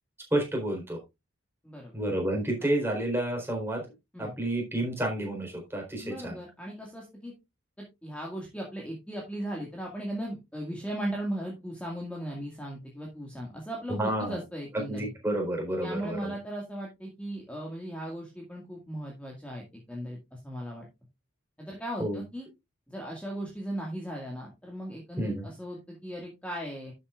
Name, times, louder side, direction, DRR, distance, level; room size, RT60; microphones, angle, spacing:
voice 1, 0.3-1.0 1.9-3.8 4.2-6.4 14.0-14.4 14.9-16.3 22.0-22.2 25.2-25.5, right 1 dB, 10° right, 1 dB, 4.1 m, -30 dB
voice 2, 1.6-2.0 2.6-2.7 4.1-4.3 6.0-7.3 7.8-15.1 15.8-20.9 21.6-22.5 22.9-26.9, right 1 dB, 5° left, -2 dB, 2.0 m, -37 dB
12.0 x 7.9 x 2.5 m, 0.23 s
head